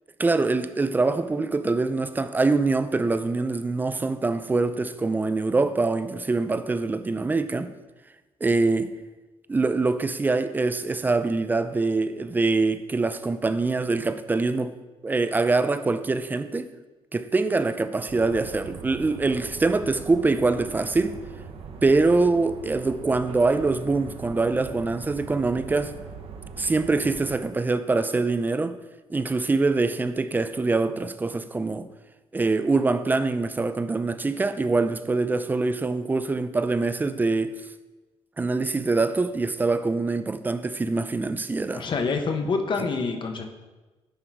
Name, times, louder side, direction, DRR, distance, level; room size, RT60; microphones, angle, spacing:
voice 1, 0.2-7.7 8.4-8.9 9.5-14.7 15.0-16.7 17.1-21.2 21.8-25.9 26.6-28.8 29.1-31.9 32.3-37.5 38.4-41.8, right 3 dB, 15° right, 0.4 m, -24 dB
sound 1, 18.1-27.4, right 5 dB, 60° right, 0.9 m, -41 dB
voice 2, 41.7-43.5, left 4 dB, 45° left, 0.9 m, -26 dB
10.0 x 3.8 x 4.6 m
cardioid pair, 110°, 11 cm